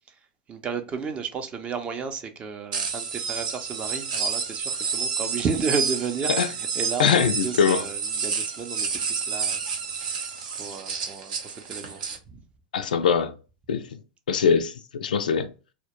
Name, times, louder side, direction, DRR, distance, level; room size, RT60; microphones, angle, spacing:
voice 1, 0.5-9.6 9.9-12.0 12.3-12.4, right 5 dB, 25° right, 0.5 m, -33 dB
sound 1, 2.7-12.2, right 5 dB, 70° right, 0.6 m, -30 dB
voice 2, 7.0-7.8 12.7-13.3 13.7-14.0 14.3-15.5, left 6 dB, 85° left, 0.3 m, -22 dB
2.1 x 2.0 x 2.9 m
hypercardioid pair, 110°, 4 cm